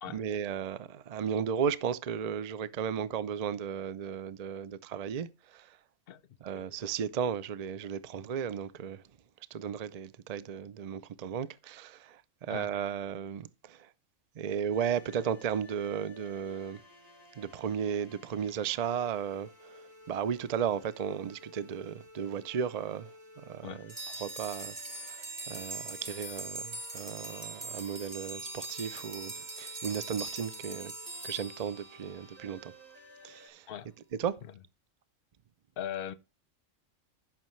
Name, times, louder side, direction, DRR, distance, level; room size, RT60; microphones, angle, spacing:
voice 1, 0.1-5.7 6.4-9.0 9.5-12.2 12.5-13.8 14.4-16.8 17.4-19.8 20.1-23.1 23.5-23.9 24.2-25.2 25.5-30.9 31.2-32.7 33.2-33.6 34.2-34.4, right 8 dB, 45° right, 0.5 m, -35 dB
sound 1, 14.7-33.5, left 1 dB, 90° right, 3.4 m, -55 dB
sound 2, 23.9-32.4, right 2 dB, 20° right, 1.4 m, -42 dB
voice 2, 35.8-36.1, left 10 dB, 55° left, 0.9 m, -39 dB
14.5 x 6.0 x 3.2 m
omnidirectional pair, 1.3 m